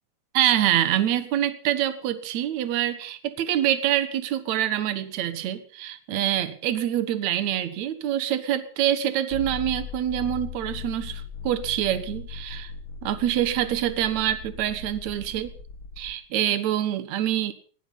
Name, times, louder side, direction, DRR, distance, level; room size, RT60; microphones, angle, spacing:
voice 1, 0.3-12.7 13.0-15.5 16.0-17.5, right 11 dB, 60° right, 13 dB, 2.3 m, -25 dB
sound 1, 9.3-16.2, left 6 dB, 40° left, 2.8 m, -39 dB
19.5 x 13.5 x 5.5 m, 0.42 s
omnidirectional pair, 4.2 m